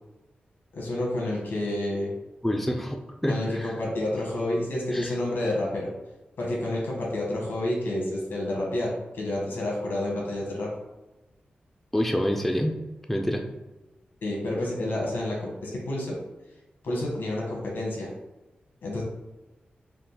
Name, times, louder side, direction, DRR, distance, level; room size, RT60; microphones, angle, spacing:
voice 1, 0.7-2.1 3.3-5.9 6.4-10.7 14.2-16.2 16.8-18.1 18.8-19.0, left 1 dB, 90° left, -3 dB, 1.2 m, -29 dB
voice 2, 2.4-3.0 3.2-3.7 4.9-5.1 11.9-12.8 13.1-13.4, equal, 5° left, 3 dB, 0.3 m, -26 dB
3.6 x 2.4 x 4.0 m, 1.1 s
wide cardioid pair, 130°, 3 cm